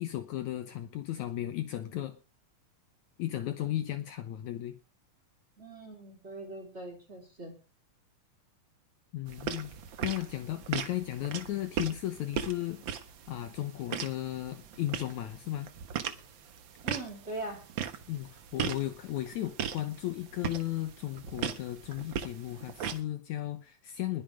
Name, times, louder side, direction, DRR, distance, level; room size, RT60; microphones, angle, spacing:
voice 1, 0.0-2.2 3.2-4.8 9.1-9.7 10.0-12.9 13.3-15.7 18.1-24.2, left 14 dB, 70° left, 2.1 m, -35 dB
voice 2, 5.6-7.5 16.8-17.6, right 2 dB, 20° right, 4.0 m, -41 dB
sound 1, 9.3-23.0, right 8 dB, 75° right, 1.1 m, -39 dB
20.5 x 7.6 x 4.9 m
omnidirectional pair, 3.8 m